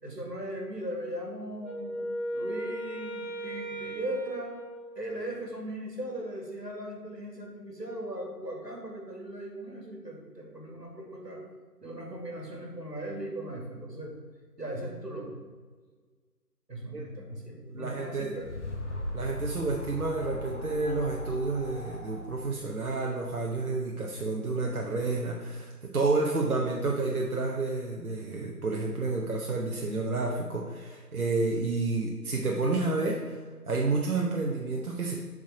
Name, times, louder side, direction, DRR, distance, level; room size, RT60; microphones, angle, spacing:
voice 1, 0.0-2.1 2.3-4.5 5.0-11.4 11.8-14.1 14.6-15.4 16.7-18.5, right 1 dB, 85° right, 0 dB, 2.2 m, -38 dB
Wind instrument woodwind instrument, 1.6-5.5, right 1 dB, 25° left, 2.3 m, -37 dB
voice 2, 17.7-18.4 19.1-33.4 33.7-35.2, right 3 dB, 65° right, -1 dB, 1.0 m, -30 dB
sound 1, 18.0-23.6, left 1 dB, 45° left, 0.9 m, -39 dB
7.7 x 4.0 x 4.9 m, 1.5 s
figure-of-eight pair, 160°, 48 cm